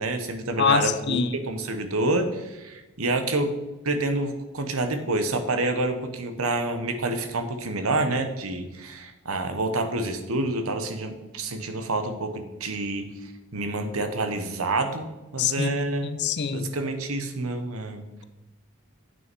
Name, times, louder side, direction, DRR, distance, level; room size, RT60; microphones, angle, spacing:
voice 1, 0.0-3.5 3.8-16.1 16.5-18.0, right 2 dB, 80° right, 7 dB, 1.1 m, -28 dB
voice 2, 0.6-1.3 15.4-15.7 16.0-16.7, left 6 dB, 50° left, 12 dB, 0.5 m, -24 dB
8.6 x 6.4 x 4.6 m, 1.1 s
head